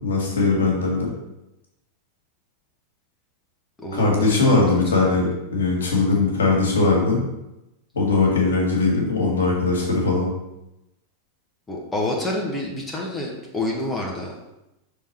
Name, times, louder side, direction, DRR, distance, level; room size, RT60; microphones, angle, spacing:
voice 1, 0.0-1.1 3.9-7.2 7.9-10.3, left 3 dB, 65° left, -1 dB, 1.7 m, -20 dB
voice 2, 3.8-4.8 5.0-5.3 11.7-14.3, left 1 dB, 10° left, -1 dB, 1.2 m, -28 dB
6.4 x 3.7 x 4.4 m, 0.92 s
figure-of-eight pair, 90°, 0 cm